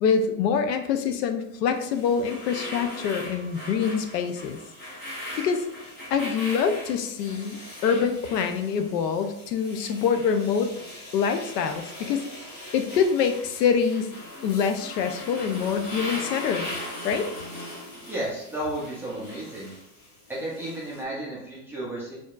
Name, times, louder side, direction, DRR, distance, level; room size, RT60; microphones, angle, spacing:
voice 1, 0.0-4.6 5.4-5.6 6.1-10.7 11.1-12.2 12.7-14.1 14.4-16.6 17.0-17.3, left 6 dB, 80° left, 7 dB, 0.7 m, -25 dB
sound 1, 1.7-21.0, left 1 dB, 20° left, 1.0 m, -40 dB
voice 2, 18.0-19.7 20.3-22.2, right 1 dB, 5° right, -7 dB, 0.4 m, -33 dB
4.4 x 3.0 x 2.4 m, 0.79 s
supercardioid pair, 140°, 48 cm